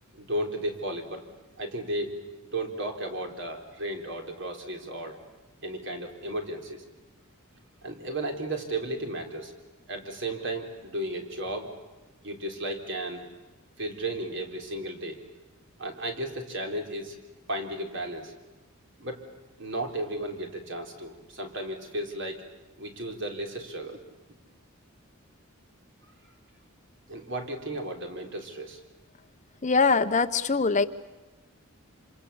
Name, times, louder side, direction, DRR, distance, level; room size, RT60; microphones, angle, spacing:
voice 1, 0.1-1.3 1.6-2.2 2.5-5.2 5.6-6.8 7.8-9.5 9.9-11.7 12.2-13.2 13.8-15.2 15.8-17.2 17.5-18.3 19.0-19.2 19.6-22.4 22.8-24.0 27.1-28.8, right 1 dB, 55° right, 3 dB, 3.8 m, -34 dB
voice 2, 29.6-30.8, left 4 dB, 35° left, 11 dB, 0.8 m, -22 dB
27.0 x 26.5 x 7.1 m, 1.2 s
head